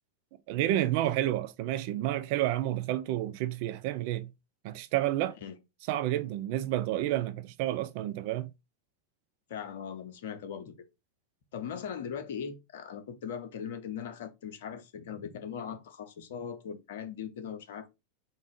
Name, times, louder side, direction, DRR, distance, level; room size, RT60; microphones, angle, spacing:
voice 1, 0.5-4.3 4.6-5.4 5.9-8.5, right 13 dB, 45° right, 0.4 m, -30 dB
voice 2, 9.5-10.7 11.5-17.9, left 7 dB, 55° left, 0.6 m, -39 dB
3.8 x 2.5 x 3.8 m
figure-of-eight pair, 90°, 0 cm